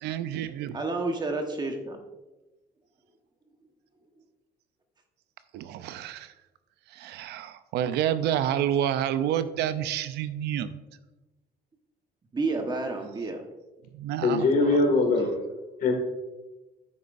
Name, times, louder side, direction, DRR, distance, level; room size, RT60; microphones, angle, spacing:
voice 1, 0.0-0.8 5.5-6.3 6.9-10.7 13.9-14.8, right 10 dB, 80° right, 13 dB, 0.5 m, -29 dB
voice 2, 0.7-2.0 12.3-13.5, right 3 dB, 25° right, 4 dB, 1.2 m, -30 dB
voice 3, 14.2-15.3 15.8-15.9, left 3 dB, 55° left, 3 dB, 2.1 m, -21 dB
9.4 x 8.5 x 2.6 m, 1.1 s
cardioid pair, 110°, 17 cm